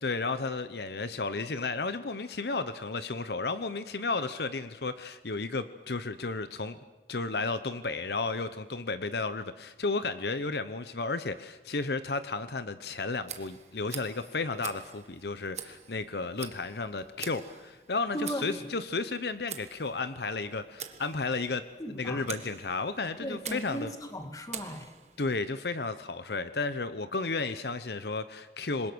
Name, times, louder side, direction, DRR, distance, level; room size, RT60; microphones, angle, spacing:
voice 1, 0.0-6.8 7.1-23.9 25.2-28.9, left 3 dB, 70° left, 12 dB, 0.9 m, -33 dB
Tick, 13.2-25.3, right 9 dB, 40° right, 1.4 m, -46 dB
voice 2, 18.1-18.6 21.8-22.3 23.2-24.9, equal, 20° left, 6 dB, 1.9 m, -36 dB
26.5 x 21.5 x 6.3 m, 1.1 s
head